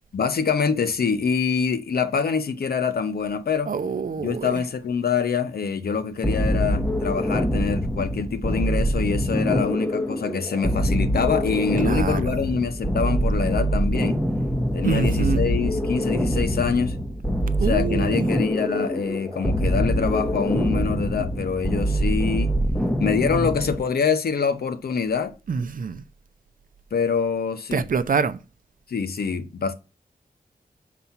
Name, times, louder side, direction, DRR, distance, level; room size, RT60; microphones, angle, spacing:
voice 1, 0.1-3.7 4.2-14.2 14.7-17.0 17.6-22.5 23.0-25.3 26.9-27.9 28.9-29.7, left 6 dB, 75° left, 0.8 m, -25 dB
voice 2, 3.7-4.6 11.8-12.2 14.8-15.4 17.6-18.3 25.5-26.0 27.7-28.4, right 5 dB, 60° right, 0.6 m, -25 dB
sound 1, 6.2-23.8, equal, 5° left, 0.8 m, -24 dB
5.7 x 4.1 x 5.7 m
wide cardioid pair, 80°, 16 cm